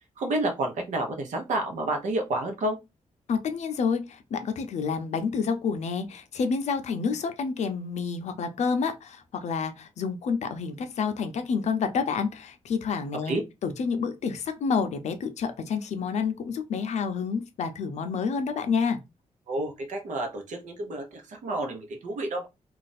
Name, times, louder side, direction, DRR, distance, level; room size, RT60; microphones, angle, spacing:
voice 1, 0.2-2.8 13.3-13.4 19.5-22.5, right 1 dB, 85° right, 0.9 m, -30 dB
voice 2, 3.3-13.4 13.6-19.0, left 5 dB, 70° left, 0.5 m, -29 dB
2.5 x 2.4 x 4.0 m
wide cardioid pair, 160°, 12 cm